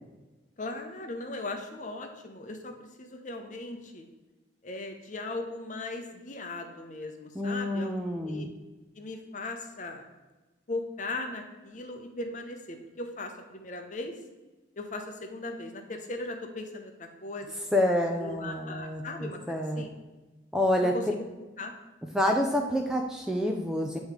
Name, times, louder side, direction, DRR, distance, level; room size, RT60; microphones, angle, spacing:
voice 1, 0.6-4.1 4.6-8.5 9.0-10.0 10.7-14.1 14.8-17.5 18.1-20.0 20.7-21.2 21.6-21.7, left 2 dB, 40° left, 5 dB, 0.7 m, -38 dB
voice 2, 7.4-8.5 17.7-19.8 20.5-20.9 22.1-24.0, left 1 dB, 5° right, 1 dB, 0.4 m, -28 dB
8.4 x 3.2 x 4.8 m, 1.2 s
head